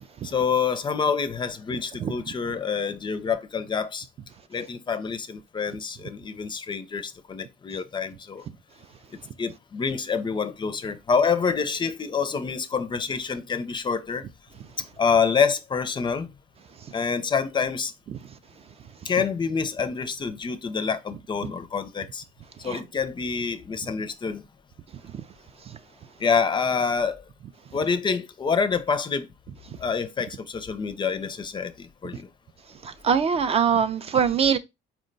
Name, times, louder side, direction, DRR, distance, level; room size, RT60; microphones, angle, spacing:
voice 1, 0.2-4.1 4.5-8.4 9.4-14.3 15.0-16.3 16.9-17.9 19.0-22.2 22.6-24.4 26.2-27.2 27.7-29.3 29.8-32.3, left 5 dB, 30° left, 0.4 m, -27 dB
voice 2, 32.8-34.6, right 7 dB, 35° right, 0.4 m, -22 dB
4.5 x 2.1 x 3.8 m
cardioid pair, 110°, 17 cm